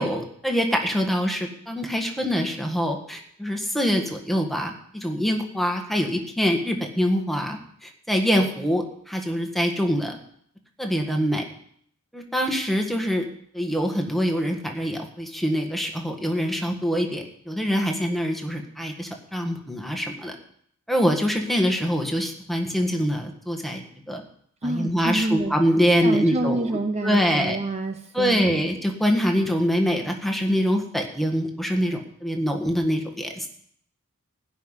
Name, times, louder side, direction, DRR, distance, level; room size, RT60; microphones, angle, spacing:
voice 1, 0.0-10.2 10.8-11.4 12.1-13.3 13.5-20.4 20.9-23.8 24.1-24.2 24.6-26.7 27.0-27.6 28.1-33.5, equal, ahead, 3 dB, 1.7 m, -24 dB
voice 2, 24.6-25.5 26.0-28.6, right 2 dB, 30° right, 7 dB, 0.8 m, -27 dB
16.0 x 5.7 x 9.9 m, 0.66 s
head